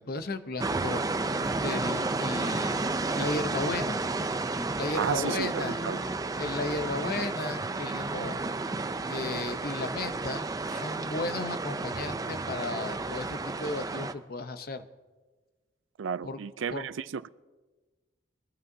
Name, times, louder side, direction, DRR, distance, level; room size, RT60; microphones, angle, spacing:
voice 1, 0.0-4.0 4.8-5.8 6.4-8.5 9.1-14.8 16.2-16.4 16.7-16.9, left 2 dB, 50° left, 0.7 m, -35 dB
sound 1, 0.6-6.3, equal, 5° left, 1.4 m, -44 dB
sound 2, 0.6-14.1, right 3 dB, 20° right, 0.4 m, -32 dB
voice 2, 5.0-6.0 16.0-17.3, right 7 dB, 90° right, 0.4 m, -33 dB
23.0 x 15.0 x 2.7 m
head